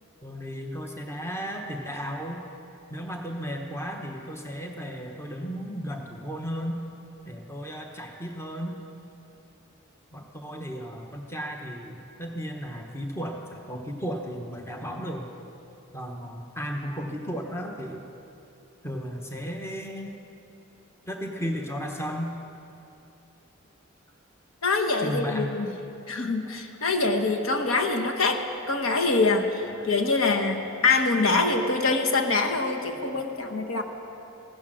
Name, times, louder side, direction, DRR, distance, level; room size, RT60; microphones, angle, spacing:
voice 1, 0.2-2.4 2.9-6.8 7.2-8.8 10.1-15.3 15.9-18.0 18.8-20.3 21.1-22.3 25.0-25.5 26.5-26.6 29.6-30.2 30.6-30.7 31.6-31.7 32.5-33.8, equal, 10° left, 2 dB, 1.0 m, -35 dB
voice 2, 24.6-25.7 26.1-28.4 28.7-33.8, left 3 dB, 80° left, 4 dB, 1.1 m, -24 dB
15.0 x 10.5 x 6.3 m, 2.9 s
head